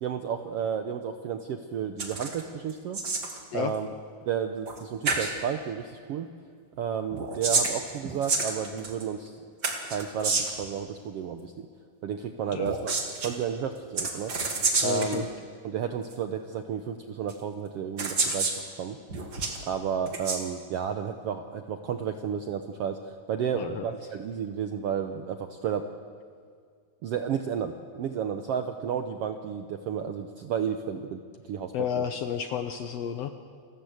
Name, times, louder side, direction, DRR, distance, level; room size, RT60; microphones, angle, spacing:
voice 1, 0.0-3.0 3.5-3.9 4.3-6.3 6.8-9.4 9.8-11.7 12.0-12.9 13.2-14.3 14.8-15.3 15.6-18.5 18.8-19.0 19.6-25.9 27.0-31.2 31.5-32.0, right 7 dB, 75° right, 7 dB, 1.4 m, -32 dB
sound 1, 2.0-2.4 2.7-3.4 4.7-4.8 5.0-5.3 7.1-9.0 9.6-10.6 12.6-13.3 14.0-15.2 16.1-16.2 17.3-17.4 18.0-18.6 19.1-19.6 20.1-20.4, right 3 dB, 35° right, 2.2 m, -28 dB
voice 2, 14.8-15.3 23.5-23.9 31.7-33.3, left 8 dB, 70° left, 8 dB, 1.6 m, -31 dB
29.0 x 13.5 x 7.9 m, 2.1 s
omnidirectional pair, 3.7 m